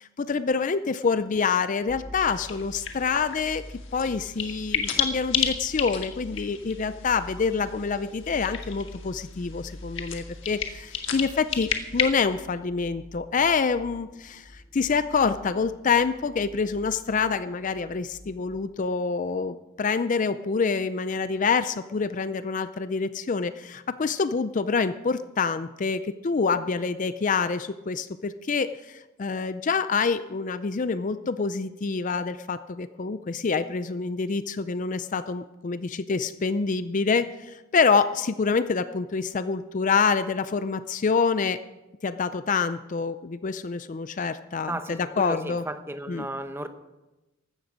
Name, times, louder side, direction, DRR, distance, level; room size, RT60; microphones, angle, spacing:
voice 1, 0.0-3.6 3.9-41.6 42.0-45.6 46.1-46.3, left 5 dB, 35° left, 12 dB, 0.4 m, -26 dB
sound 1, 1.9-18.6, left 1 dB, 15° left, 2.0 m, -46 dB
sound 2, 2.2-12.0, left 8 dB, 60° left, 1.6 m, -33 dB
voice 2, 44.7-46.7, right 1 dB, 10° right, 8 dB, 0.8 m, -34 dB
15.5 x 12.5 x 5.1 m, 1.1 s
head